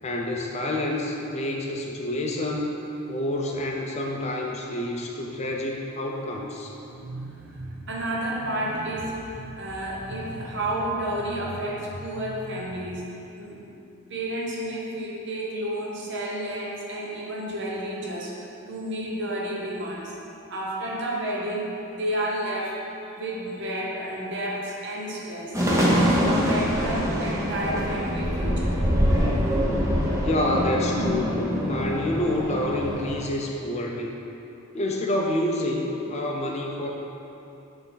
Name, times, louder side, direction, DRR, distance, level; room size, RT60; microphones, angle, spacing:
voice 1, 0.0-2.8 3.1-6.7 30.2-34.1 34.7-36.9, left 1 dB, 30° left, 0 dB, 0.4 m, -28 dB
voice 2, 6.9-13.0 13.4-13.6 14.1-18.4 18.7-20.2 20.5-22.9 23.1-25.6 25.9-28.8, right 1 dB, 55° right, -3 dB, 0.9 m, -31 dB
sound 1, 25.5-33.2, equal, 15° right, 0.7 m, -24 dB
7.8 x 3.5 x 3.9 m, 2.9 s
head